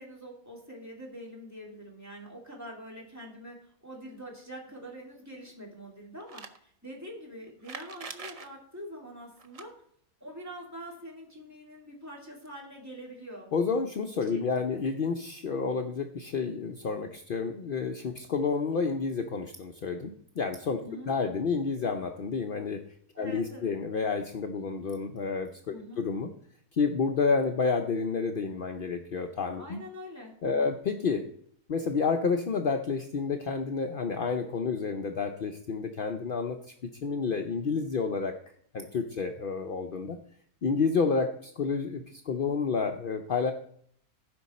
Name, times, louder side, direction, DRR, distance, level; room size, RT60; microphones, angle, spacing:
voice 1, 0.0-9.7 10.2-13.5 14.3-14.9 20.8-21.1 23.1-23.7 25.7-26.0 29.6-30.8, equal, 10° right, -3 dB, 2.4 m, -45 dB
sound 1, 6.2-6.6 7.6-8.5 9.4-9.6 12.2-12.3 12.5-12.6 13.7-13.8, right 4 dB, 65° right, 0.3 m, -43 dB
voice 2, 13.5-22.8 23.2-26.3 26.7-29.8 30.4-31.2 31.7-36.6 37.0-38.3 38.7-40.2 40.6-43.5, left 5 dB, 60° left, 5 dB, 0.5 m, -30 dB
15.0 x 5.2 x 4.2 m, 0.62 s
omnidirectional pair, 1.7 m